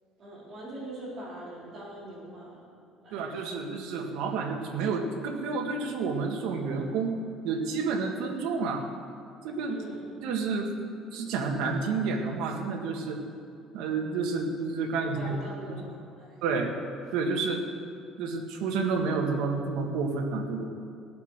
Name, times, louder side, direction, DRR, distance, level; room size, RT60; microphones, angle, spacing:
voice 1, 0.2-2.6 3.0-3.4 9.7-10.1 15.0-16.3, right 1 dB, 35° right, -7 dB, 4.3 m, -42 dB
voice 2, 3.1-7.2 7.4-8.9 9.4-9.8 10.2-10.7 11.1-13.2 13.7-15.3 15.7-15.8 16.4-16.8 17.1-17.6 18.2-20.6, right 4 dB, 80° right, 2 dB, 1.9 m, -30 dB
16.5 x 8.2 x 6.7 m, 2.4 s
cardioid pair, 145°, 0 cm